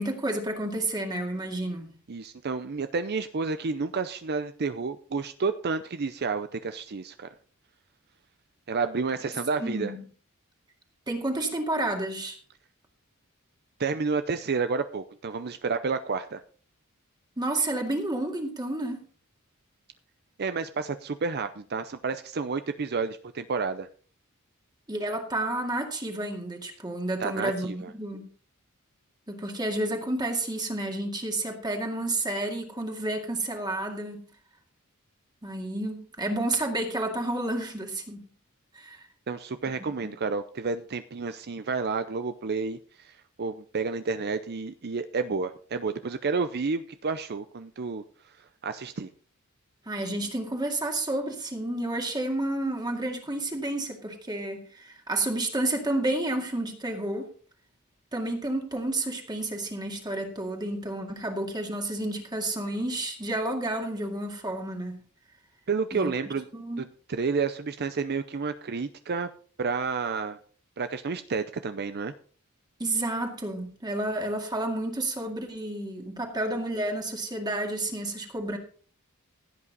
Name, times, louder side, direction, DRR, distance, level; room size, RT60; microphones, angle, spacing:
voice 1, 0.0-2.0 9.6-10.0 11.1-12.4 17.4-19.0 24.9-28.3 29.3-34.2 35.4-38.3 38.7-39.1 39.8-39.9 49.9-57.3 58.1-65.0 65.9-66.1 66.5-66.9 72.8-78.6, right 1 dB, 20° right, 2.1 m, -30 dB
voice 2, 2.1-7.3 8.7-9.9 13.8-16.4 20.4-23.9 27.2-27.9 39.3-48.3 48.6-49.1 65.7-66.4 66.8-69.3 69.6-70.4 70.8-72.1, right 4 dB, 50° right, 0.6 m, -30 dB
16.0 x 8.6 x 4.0 m
head